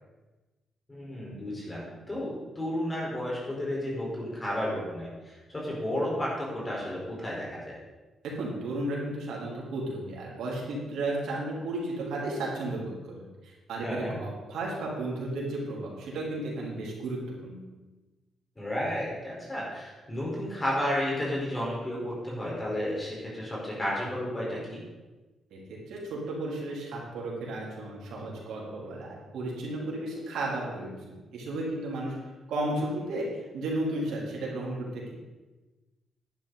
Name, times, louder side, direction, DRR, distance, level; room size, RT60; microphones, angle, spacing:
voice 1, 0.9-7.8 13.8-14.1 18.6-24.8, left 1 dB, 15° left, -5 dB, 4.6 m, -32 dB
voice 2, 8.2-17.6 25.5-31.0 31.3-32.1 32.5-35.1, right 2 dB, 90° right, -4 dB, 3.6 m, -34 dB
11.0 x 10.5 x 4.1 m, 1.2 s
cardioid pair, 130°, 0 cm